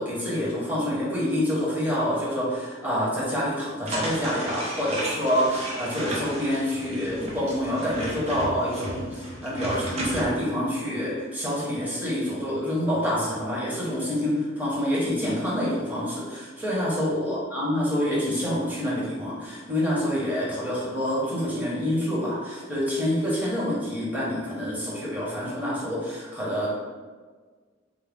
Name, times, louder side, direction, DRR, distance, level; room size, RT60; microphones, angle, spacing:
voice 1, 0.0-26.7, equal, 10° right, -7 dB, 0.9 m, -27 dB
sound 1, 3.9-10.3, right 1 dB, 35° right, 0.7 m, -34 dB
3.7 x 2.2 x 3.5 m, 1.5 s
head